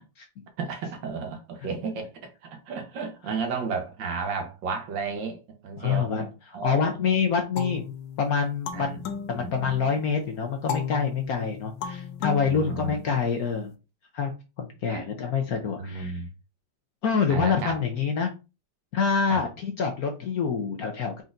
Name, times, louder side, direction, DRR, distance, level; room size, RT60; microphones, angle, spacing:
voice 1, 0.6-6.1 6.5-7.0 8.7-9.0 9.3-9.5 12.4-12.9 14.9-15.0 15.6-16.3 17.3-17.7 19.3-19.4, right 4 dB, 70° right, 1.7 m, -33 dB
voice 2, 5.8-7.8 8.2-9.0 9.3-13.7 14.1-14.3 14.6-16.2 17.0-18.3 18.9-21.2, left 6 dB, 65° left, 1.0 m, -26 dB
sound 1, 7.6-10.0 10.7-13.5, left 7 dB, 80° left, 1.5 m, -35 dB
4.6 x 4.1 x 2.5 m
omnidirectional pair, 2.1 m